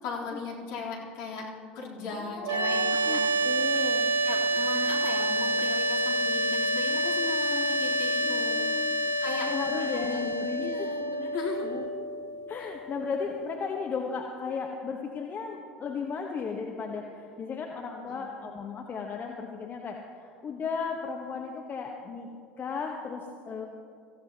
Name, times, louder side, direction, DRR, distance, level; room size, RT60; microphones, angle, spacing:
voice 1, 0.0-1.5 1.7-3.9 4.2-8.7 9.2-11.7 12.6-12.7 18.0-18.2, left 4 dB, 55° left, -4 dB, 3.6 m, -38 dB
voice 2, 2.2-4.1 8.2-10.9 11.6-11.9 12.5-22.3 22.6-23.7, left 5 dB, 35° left, 2 dB, 1.3 m, -35 dB
sound 1, 2.4-13.5, right 1 dB, 45° right, 1.5 m, -28 dB
25.0 x 15.5 x 3.0 m, 2.4 s
figure-of-eight pair, 70°, 6 cm